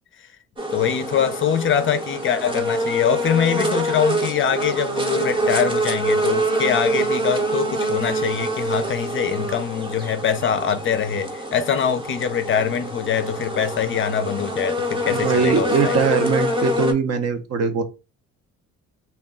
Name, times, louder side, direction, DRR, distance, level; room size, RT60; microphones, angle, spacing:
sound 1, 0.6-16.9, right 1 dB, 15° right, 0.7 m, -25 dB
voice 1, 0.7-16.0, left 8 dB, 40° left, 0.4 m, -23 dB
voice 2, 15.1-17.8, right 5 dB, 55° right, 0.7 m, -21 dB
2.3 x 2.2 x 3.6 m
cardioid pair, 90°, 30 cm